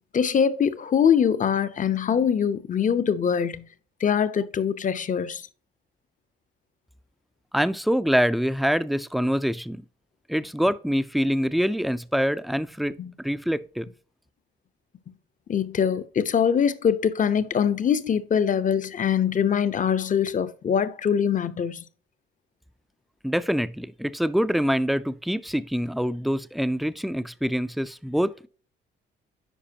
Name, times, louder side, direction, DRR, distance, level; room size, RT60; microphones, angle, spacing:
voice 1, 0.1-3.7 4.0-5.5 13.0-13.1 15.5-21.9, left 7 dB, 40° left, 0.7 m, -23 dB
voice 2, 7.5-9.8 10.3-13.9 23.2-28.5, equal, ahead, 0.4 m, -25 dB
10.0 x 5.0 x 2.8 m
cardioid pair, 90°, 20 cm